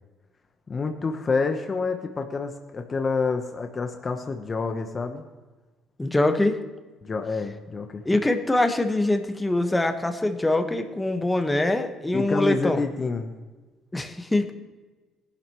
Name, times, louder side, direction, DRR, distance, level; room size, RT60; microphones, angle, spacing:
voice 1, 0.7-5.2 7.0-8.0 12.1-13.3, left 4 dB, 35° left, 5 dB, 1.0 m, -28 dB
voice 2, 6.0-6.6 8.0-12.8 13.9-14.5, left 2 dB, 10° left, 6 dB, 1.4 m, -23 dB
18.5 x 11.5 x 3.1 m, 1.3 s
cardioid pair, 95°, 0 cm